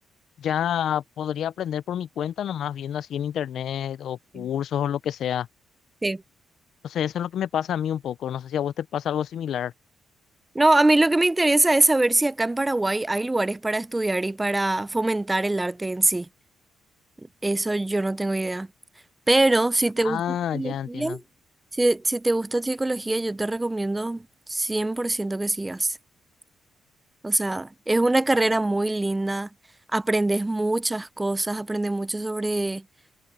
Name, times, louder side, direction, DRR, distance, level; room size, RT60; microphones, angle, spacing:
voice 1, 0.4-5.5 6.8-9.7 20.0-21.2, left 9 dB, 70° left, 0.5 m, -28 dB
voice 2, 10.5-16.3 17.4-18.7 19.3-21.2 21.7-26.0 27.2-29.5 29.9-32.8, right 2 dB, 15° right, 0.4 m, -23 dB
cardioid pair, 90°, 0 cm